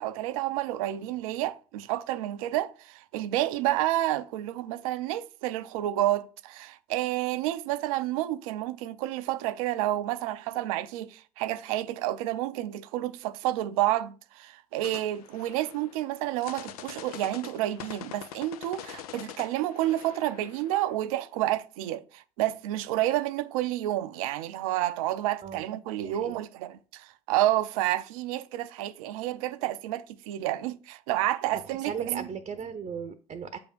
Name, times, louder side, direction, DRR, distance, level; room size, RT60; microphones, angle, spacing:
voice 1, 0.0-32.3, right 14 dB, 65° right, 0.5 m, -30 dB
sound 1, 14.8-21.2, left 10 dB, 75° left, 0.6 m, -45 dB
voice 2, 26.0-26.4 31.5-33.6, right 6 dB, 30° right, 0.7 m, -37 dB
7.8 x 3.5 x 6.0 m
hypercardioid pair, 65°, 19 cm